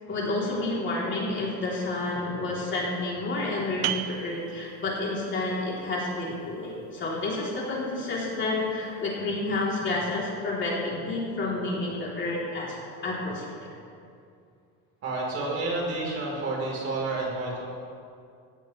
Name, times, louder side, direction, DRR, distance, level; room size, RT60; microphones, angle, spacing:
voice 1, 0.1-12.8 13.0-13.7, left 2 dB, 30° left, -5 dB, 3.2 m, -30 dB
sound 1, 3.8-9.2, right 13 dB, 75° right, 0.8 m, -39 dB
voice 2, 15.0-17.6, right 2 dB, 40° right, -3 dB, 4.0 m, -30 dB
18.5 x 15.0 x 3.2 m, 2.4 s
cardioid pair, 160°, 37 cm